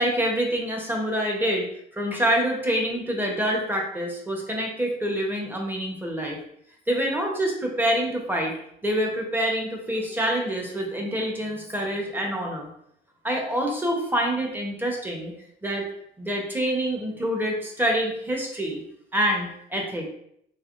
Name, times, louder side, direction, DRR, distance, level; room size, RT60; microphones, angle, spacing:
voice 1, 0.0-6.4 6.9-8.5 8.8-12.7 13.2-15.3 15.6-15.8 16.2-18.8 19.1-20.1, equal, 10° right, 0 dB, 0.9 m, -26 dB
3.3 x 3.2 x 2.5 m, 0.72 s
cardioid pair, 90°, 20 cm